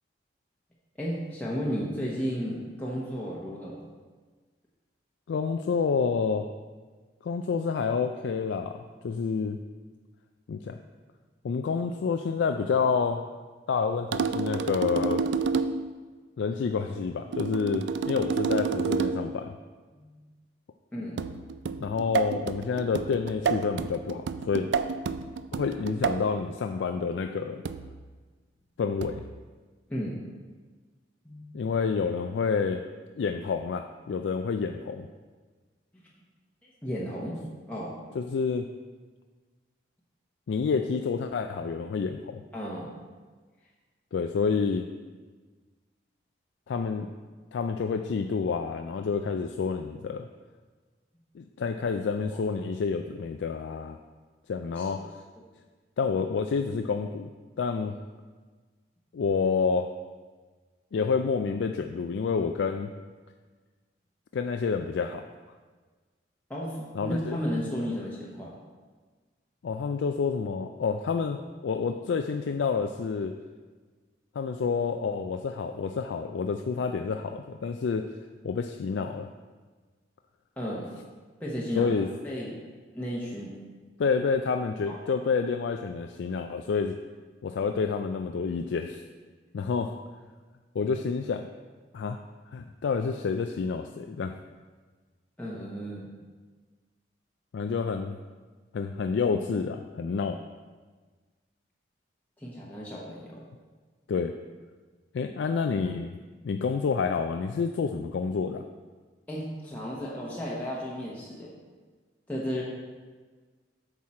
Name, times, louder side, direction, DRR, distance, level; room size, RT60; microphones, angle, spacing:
voice 1, 1.0-3.8 19.9-20.2 20.9-21.2 29.9-30.2 31.2-31.5 36.8-37.4 37.7-37.9 42.5-42.9 52.3-52.4 54.8-55.0 66.5-68.5 80.6-80.9 81.4-82.0 82.2-82.5 82.9-83.5 84.9-85.0 95.4-96.1 102.4-103.4 109.3-111.5 112.3-112.6, equal, 10° left, -6 dB, 1.0 m, -33 dB
voice 2, 5.3-6.5 7.2-9.6 10.5-10.8 11.4-13.3 13.7-15.3 16.4-19.5 21.8-24.7 25.5-27.6 28.8-29.2 31.5-32.8 33.2-35.1 38.2-38.7 40.5-42.4 44.1-44.9 46.7-47.1 47.5-50.3 51.3-54.0 54.5-55.1 56.0-57.3 57.6-57.9 59.1-59.9 60.9-62.9 64.3-65.3 66.9-67.4 69.6-73.3 74.4-78.1 78.4-79.3 81.8-82.1 84.0-87.0 87.4-89.0 89.5-90.0 90.7-91.5 91.9-92.2 92.5-94.3 97.5-98.2 98.7-100.4 104.1-104.4 105.1-106.2 106.4-108.6, left 5 dB, 80° left, 6 dB, 0.3 m, -28 dB
sound 1, 14.1-15.9 17.3-19.3 21.2-26.3 27.6-28.0 29.0-29.3, right 5 dB, 70° right, 0.3 m, -30 dB
8.4 x 6.1 x 4.3 m, 1.4 s
head